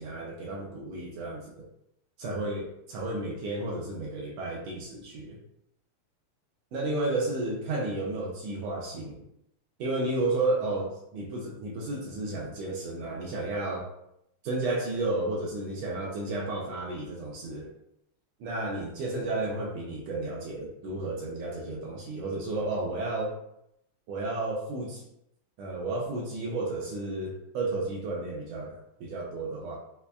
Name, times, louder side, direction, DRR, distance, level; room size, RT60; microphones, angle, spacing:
voice 1, 0.0-1.7 2.2-5.4 6.7-9.2 9.8-13.9 14.4-17.7 18.4-23.3 24.1-25.0 25.6-29.8, right 2 dB, 75° right, -2 dB, 1.5 m, -32 dB
5.1 x 2.1 x 2.3 m, 0.78 s
omnidirectional pair, 3.4 m